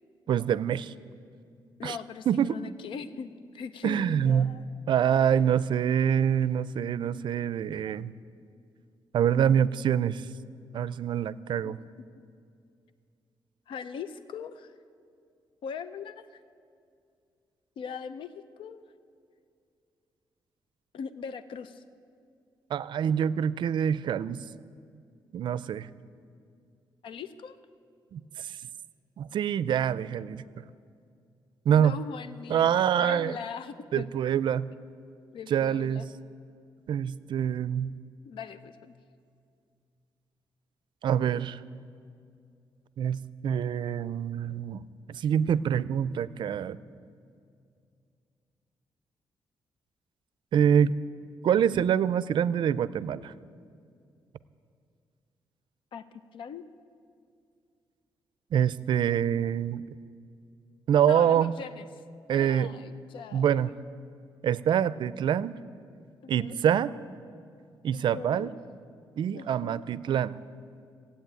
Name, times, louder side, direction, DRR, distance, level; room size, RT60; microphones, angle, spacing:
voice 1, 0.3-0.9 1.8-2.0 2.3-2.6 3.8-4.5 4.9-8.1 9.1-10.2 10.7-11.8 22.7-24.4 25.3-25.9 28.1-28.6 29.2-30.4 31.7-32.0 32.5-33.4 33.9-34.7 35.5-36.1 36.9-37.9 41.0-41.6 43.0-46.8 50.5-50.9 51.4-53.3 58.5-59.8 60.9-61.5 62.3-62.7 63.3-63.7 64.4-65.6 66.3-66.9 67.8-68.5 69.2-70.4, right 9 dB, 65° right, 17 dB, 0.4 m, -25 dB
voice 2, 1.8-4.7 5.2-5.3 11.6-11.7 13.7-14.7 15.6-16.4 17.8-18.3 18.6-18.8 20.9-21.8 27.0-27.6 31.7-34.1 35.3-36.1 38.2-38.9 55.9-56.0 56.3-56.6 61.1-61.9 62.3-63.6 66.2-66.6 67.9-68.5 69.3-69.8, left 6 dB, 75° left, 12 dB, 0.6 m, -40 dB
15.5 x 8.6 x 9.0 m, 2.4 s
cardioid pair, 130°, 9 cm